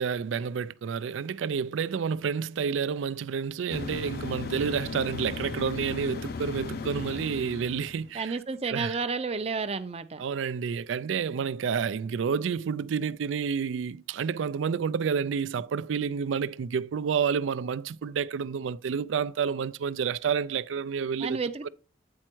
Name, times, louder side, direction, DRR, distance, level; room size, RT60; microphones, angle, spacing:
voice 1, 0.0-8.4 8.7-9.0 10.2-21.7, right 6 dB, 85° right, 0.4 m, -29 dB
sound 1, 3.7-8.1, left 4 dB, 55° left, 0.5 m, -36 dB
voice 2, 8.1-10.2 21.2-21.7, right 4 dB, 35° right, 0.5 m, -31 dB
8.6 x 4.4 x 4.5 m
head